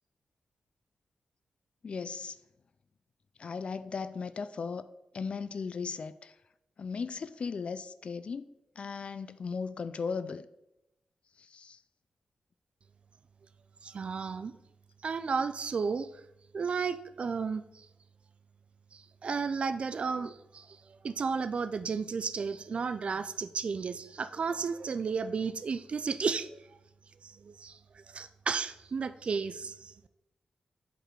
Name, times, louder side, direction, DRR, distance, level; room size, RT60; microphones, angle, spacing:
voice 1, 1.8-2.4 3.4-4.9 5.1-6.3 6.8-8.5 8.8-10.5 11.4-11.8, left 5 dB, 50° left, 0.3 m, -37 dB
voice 2, 13.8-14.5 15.0-16.1 16.5-17.9 18.9-26.8 27.2-29.9, right 5 dB, 50° right, 0.3 m, -33 dB
8.1 x 4.1 x 4.6 m
cardioid pair, 90°, 2 cm